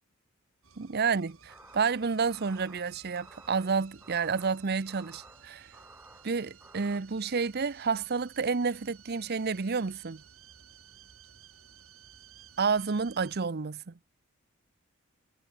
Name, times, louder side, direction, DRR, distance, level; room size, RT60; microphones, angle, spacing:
sound 1, 0.6-13.4, right 7 dB, 90° right, 5.0 m, -56 dB
voice 1, 0.8-5.7 6.2-10.2 12.6-14.0, right 5 dB, 50° right, 0.7 m, -30 dB
sound 2, 1.5-7.0, right 2 dB, 10° right, 4.6 m, -55 dB
head